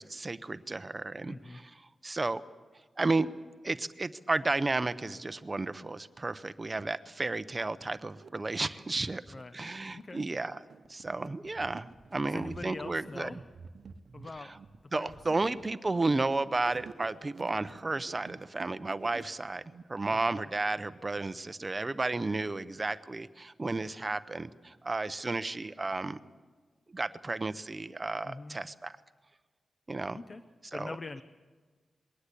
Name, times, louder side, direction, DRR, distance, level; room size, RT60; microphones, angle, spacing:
voice 1, 0.0-1.7 2.0-2.4 3.0-3.3 3.6-9.2 9.5-10.6 10.9-13.3 14.9-19.6 19.9-26.2 26.9-29.0 29.9-30.2 30.7-31.0, right 3 dB, 25° right, 14 dB, 0.7 m, -33 dB
voice 2, 1.3-1.6 9.3-9.6 9.9-10.2 12.2-13.4 14.1-14.5 14.8-15.4 20.1-20.2 28.2-28.6 30.1-30.4 30.7-31.2, left 3 dB, 35° left, 12 dB, 0.7 m, -43 dB
sound 1, 6.2-6.3 7.0-7.1 7.4-8.3 9.0-19.8, right 5 dB, 60° right, 0.9 m, -50 dB
21.5 x 18.5 x 8.4 m, 1.4 s
wide cardioid pair, 135°, 0 cm